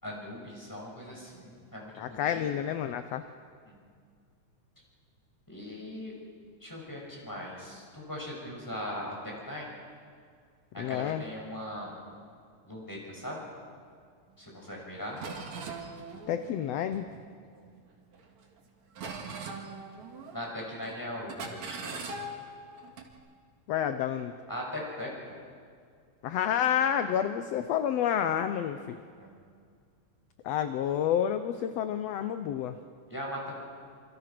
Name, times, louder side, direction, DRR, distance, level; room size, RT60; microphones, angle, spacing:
voice 1, 0.0-2.4 3.6-3.9 5.5-6.2 6.6-9.7 10.7-11.9 12.6-13.4 14.4-15.2 17.5-17.6 20.3-22.1 24.5-25.3 29.2-29.4 33.1-33.5, left 1 dB, 5° left, -2 dB, 6.5 m, -39 dB
voice 2, 2.0-3.3 10.8-11.2 16.3-17.1 23.7-24.3 26.2-29.0 30.4-32.8, left 9 dB, 70° left, 9 dB, 1.8 m, -29 dB
sound 1, 14.7-14.8 15.2-17.7 18.1-18.6 19.0-20.6 20.8-21.0 21.3-23.1, right 3 dB, 70° right, 3.4 m, -41 dB
27.0 x 26.5 x 6.0 m, 2.2 s
omnidirectional pair, 3.3 m